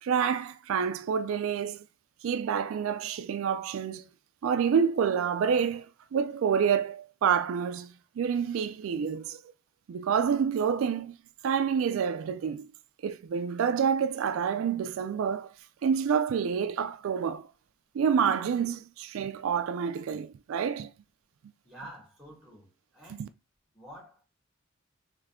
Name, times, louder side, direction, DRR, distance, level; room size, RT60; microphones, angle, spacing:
voice 1, 0.0-1.8 2.2-4.1 4.4-5.9 6.1-9.4 9.9-11.1 11.4-12.7 13.0-15.5 15.8-17.5 17.9-20.9 23.1-23.3, right 7 dB, 75° right, 0.3 m, -28 dB
voice 2, 21.6-23.3 23.7-24.2, right 1 dB, 5° right, 1.9 m, -48 dB
3.6 x 3.1 x 3.5 m
head